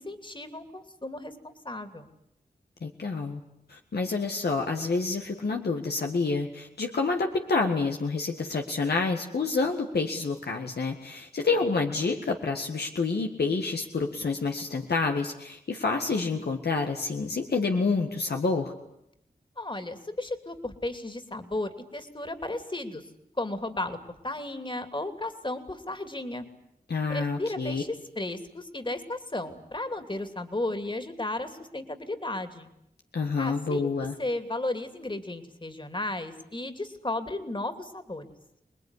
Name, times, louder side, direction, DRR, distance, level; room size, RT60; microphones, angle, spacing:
voice 1, 0.0-2.1 19.6-23.1 23.4-24.0 24.2-26.5 27.1-32.7 33.4-33.9 34.2-38.3, left 2 dB, 30° left, 8 dB, 2.9 m, -34 dB
voice 2, 2.8-3.4 3.7-18.7 26.9-27.8 33.1-34.1, left 4 dB, 85° left, 2 dB, 1.8 m, -28 dB
27.0 x 20.5 x 9.9 m, 0.79 s
wide cardioid pair, 55°, 16 cm